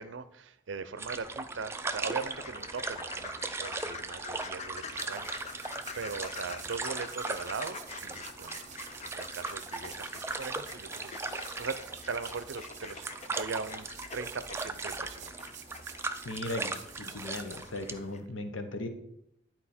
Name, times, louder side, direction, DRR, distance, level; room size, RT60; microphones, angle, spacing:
voice 1, 0.0-15.5, right 5 dB, 70° right, 13 dB, 0.5 m, -40 dB
sound 1, 1.0-18.0, right 3 dB, 15° right, 0.4 m, -39 dB
sound 2, 2.2-18.2, left 5 dB, 35° left, 0.6 m, -46 dB
sound 3, 4.7-18.3, right 8 dB, 40° right, 0.8 m, -51 dB
voice 2, 16.2-18.9, left 2 dB, 80° left, 7 dB, 0.9 m, -37 dB
11.0 x 4.4 x 4.3 m, 0.80 s
head